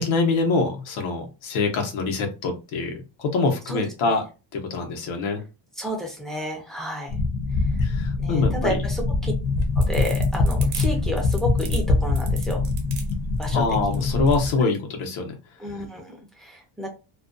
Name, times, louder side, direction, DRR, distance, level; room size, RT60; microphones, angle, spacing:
voice 1, 0.0-4.2 4.5-5.4 7.8-8.8 13.5-15.4, left 3 dB, 85° left, 3 dB, 0.9 m, -25 dB
voice 2, 3.7-4.2 5.8-7.2 8.2-9.3 9.8-12.6 13.4-13.6 13.9-14.1 15.6-16.9, equal, ahead, 0 dB, 0.4 m, -31 dB
sound 1, 7.1-14.5, left 3 dB, 50° left, 0.6 m, -23 dB
sound 2, 9.4-14.6, right 7 dB, 55° right, 0.8 m, -38 dB
2.4 x 2.2 x 2.5 m, 0.30 s
cardioid pair, 160°, 48 cm